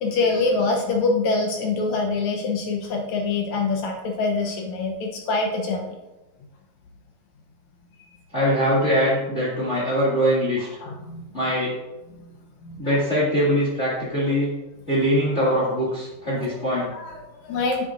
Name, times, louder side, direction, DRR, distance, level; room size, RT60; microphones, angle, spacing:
voice 1, 0.0-6.0 10.8-11.3 12.2-12.3 12.6-13.0 16.4-16.6 16.9-17.9, left 3 dB, 70° left, 1 dB, 1.9 m, -25 dB
voice 2, 8.3-10.7 11.3-11.7 12.8-14.5 14.9-16.9, equal, 25° left, -7 dB, 2.0 m, -22 dB
9.0 x 8.2 x 2.6 m, 1.0 s
omnidirectional pair, 3.9 m